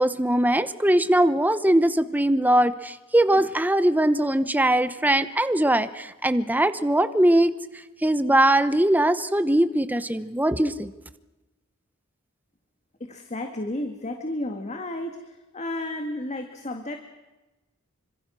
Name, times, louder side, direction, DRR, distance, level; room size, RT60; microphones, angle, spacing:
voice 1, 0.0-7.5 8.0-10.9, right 1 dB, 10° right, 12 dB, 0.9 m, -21 dB
voice 2, 13.0-15.2 15.5-17.0, left 1 dB, 30° left, 5 dB, 1.8 m, -32 dB
27.0 x 25.5 x 6.2 m, 1.1 s
head